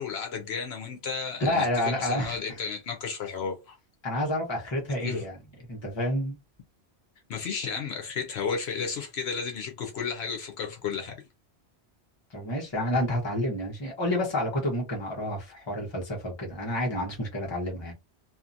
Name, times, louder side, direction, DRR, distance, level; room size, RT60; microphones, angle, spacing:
voice 1, 0.0-3.8 5.0-5.2 7.3-11.2, left 6 dB, 70° left, 0.9 m, -33 dB
voice 2, 1.4-2.4 4.0-5.4 5.7-6.4 12.3-17.9, left 1 dB, 25° left, 1.0 m, -29 dB
2.8 x 2.5 x 2.5 m
omnidirectional pair, 1.1 m